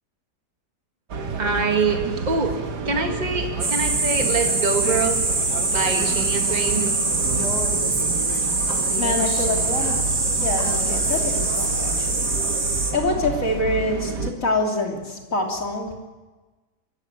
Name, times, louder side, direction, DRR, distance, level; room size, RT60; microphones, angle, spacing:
sound 1, 1.1-14.3, right 4 dB, 90° right, 2.1 m, -30 dB
voice 1, 1.4-5.4 5.7-6.8, right 4 dB, 25° right, 3 dB, 2.1 m, -25 dB
sound 2, 3.6-12.9, right 3 dB, 60° right, 3.3 m, -24 dB
Female speech woman speaking, 7.3-12.0, left 1 dB, 20° left, 2.5 m, -34 dB
voice 2, 9.0-10.0 10.4-12.3 12.9-15.9, left 2 dB, 55° left, 1 dB, 3.5 m, -26 dB
24.5 x 14.5 x 9.1 m, 1.3 s
omnidirectional pair, 1.7 m